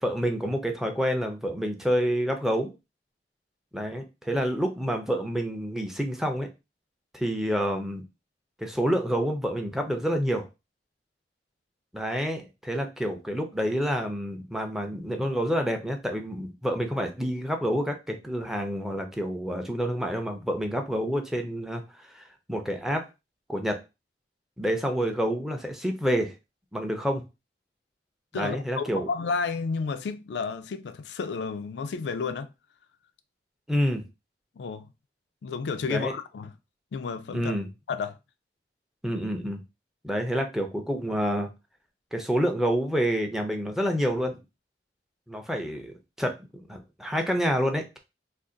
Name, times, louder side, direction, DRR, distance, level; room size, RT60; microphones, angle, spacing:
voice 1, 0.0-2.7 3.7-6.5 7.1-8.0 8.6-10.5 11.9-23.1 23.5-23.8 24.6-26.3 26.7-27.2 28.3-29.1 33.7-34.0 35.9-36.1 37.3-37.7 39.0-39.6 40.0-41.5 42.1-44.4 45.3-48.0, equal, ahead, 0.5 m, -28 dB
voice 2, 28.3-32.5 34.6-34.9 35.4-36.5 36.9-37.5 37.9-38.2, left 5 dB, 75° left, 0.4 m, -31 dB
2.5 x 2.5 x 3.7 m
head